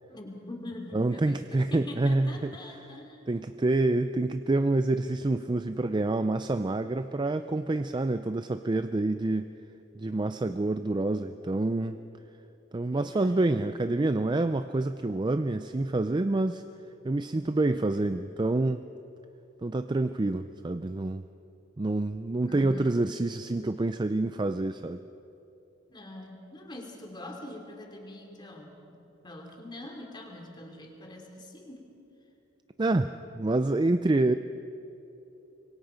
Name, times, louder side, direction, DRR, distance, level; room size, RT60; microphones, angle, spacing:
voice 1, 0.1-3.2 12.8-13.8 22.4-23.0 25.9-31.9, left 1 dB, 25° left, 2 dB, 2.9 m, -44 dB
voice 2, 0.9-2.3 3.3-9.5 9.9-12.0 12.7-16.6 17.0-18.8 19.6-21.2 21.8-25.0 32.8-34.3, right 2 dB, 25° right, 10 dB, 0.4 m, -27 dB
25.5 x 23.0 x 5.1 m, 3.0 s
head